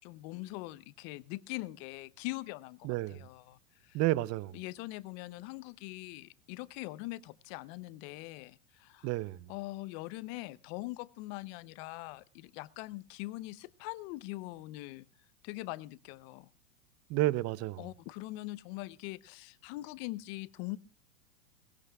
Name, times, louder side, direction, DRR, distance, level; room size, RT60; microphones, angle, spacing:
voice 1, 0.0-4.0 4.5-9.1 9.5-15.1 15.4-16.5 17.8-20.8, left 20 dB, 50° left, 0.8 m, -42 dB
voice 2, 2.8-3.3 3.9-4.6 9.0-9.5 17.1-17.8, right 17 dB, 40° right, 0.7 m, -31 dB
20.5 x 20.0 x 2.3 m
hypercardioid pair, 105°, 41 cm